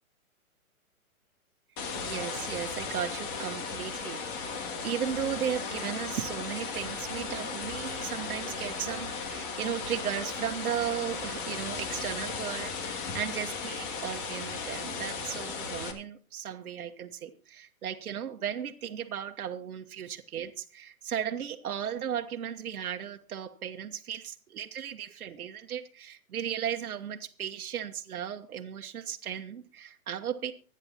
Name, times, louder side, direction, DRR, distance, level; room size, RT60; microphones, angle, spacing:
sound 1, 1.8-15.9, left 5 dB, 35° left, 2.4 m, -36 dB
voice 1, 1.9-30.5, right 9 dB, 80° right, 1.3 m, -36 dB
25.0 x 9.8 x 2.9 m
hypercardioid pair, 145°, 44 cm